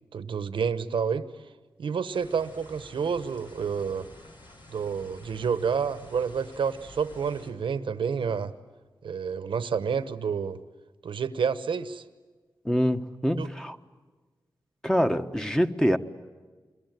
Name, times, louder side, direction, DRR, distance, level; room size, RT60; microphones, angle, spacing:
voice 1, 0.1-1.2 1.8-4.1 4.7-8.5 9.0-10.6 11.0-12.0 13.4-13.5, right 6 dB, 85° right, 1.1 m, -29 dB
sound 1, 2.1-7.5, left 1 dB, 70° left, 6.3 m, -50 dB
voice 2, 12.6-13.8 14.8-16.0, equal, 5° left, 1.4 m, -25 dB
27.5 x 23.0 x 9.4 m
cardioid pair, 70°, 8 cm